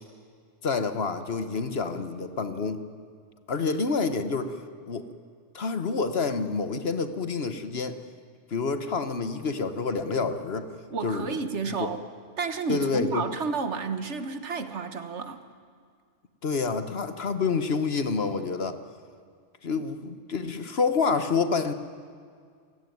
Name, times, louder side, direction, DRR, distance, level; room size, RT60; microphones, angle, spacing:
voice 1, 0.6-2.8 3.5-5.1 5.5-8.0 8.5-10.7 11.0-11.4 11.7-11.9 12.7-13.2 16.4-18.8 19.6-21.7, left 4 dB, 60° left, 10 dB, 1.4 m, -28 dB
voice 2, 10.9-12.0 12.4-15.4, right 4 dB, 70° right, 9 dB, 1.6 m, -31 dB
27.5 x 17.5 x 9.4 m, 2.1 s
omnidirectional pair, 1.2 m